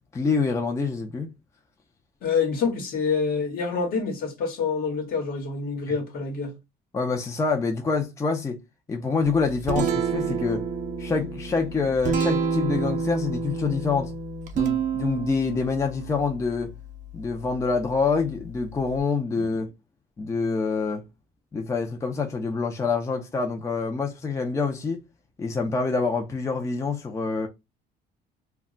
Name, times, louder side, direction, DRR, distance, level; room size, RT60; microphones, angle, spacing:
voice 1, 0.1-1.3 5.9-6.0 6.9-8.6 8.9-10.7 11.0-14.1 14.5-16.7 17.1-19.7 20.2-21.0 21.5-25.0 25.4-27.5, left 4 dB, 15° left, 0.4 m, -26 dB
voice 2, 2.2-6.5 19.4-19.5, left 5 dB, 60° left, 1.0 m, -27 dB
Guitar, 9.2-19.0, right 5 dB, 45° right, 0.5 m, -30 dB
2.2 x 2.0 x 3.7 m
cardioid pair, 110°, 17 cm